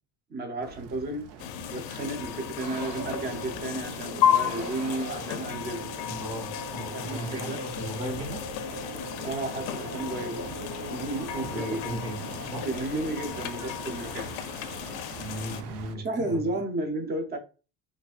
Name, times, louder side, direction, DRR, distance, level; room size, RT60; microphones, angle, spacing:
voice 1, 0.3-1.3 1.7-5.8 6.9-7.6 9.2-10.5 10.9-11.8 12.6-14.3 15.9-17.4, right 2 dB, 20° right, 0.5 m, -33 dB
sound 1, 0.6-16.0, right 7 dB, 80° right, 0.7 m, -46 dB
sound 2, 1.4-15.6, left 10 dB, 75° left, 0.5 m, -33 dB
sound 3, 2.6-15.6, right 2 dB, 35° right, 1.0 m, -41 dB
voice 2, 6.0-8.5 11.3-12.7 15.2-16.5, right 1 dB, 55° right, 1.8 m, -37 dB
4.0 x 2.5 x 2.4 m
cardioid pair, 140°, 47 cm